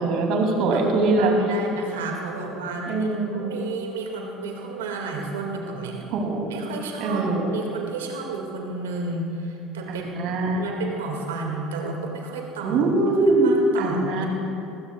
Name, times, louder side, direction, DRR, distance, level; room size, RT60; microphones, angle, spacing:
voice 1, 0.0-1.3 2.9-3.5 6.1-6.6 7.0-7.5 9.9-10.7 12.6-14.3, right 2 dB, 60° right, 1 dB, 2.7 m, -22 dB
voice 2, 0.5-6.0 6.5-10.1 10.6-12.8 13.4-14.3, right 3 dB, 85° right, 1 dB, 2.0 m, -32 dB
24.5 x 16.0 x 2.3 m, 2.8 s
hypercardioid pair, 70°, 0 cm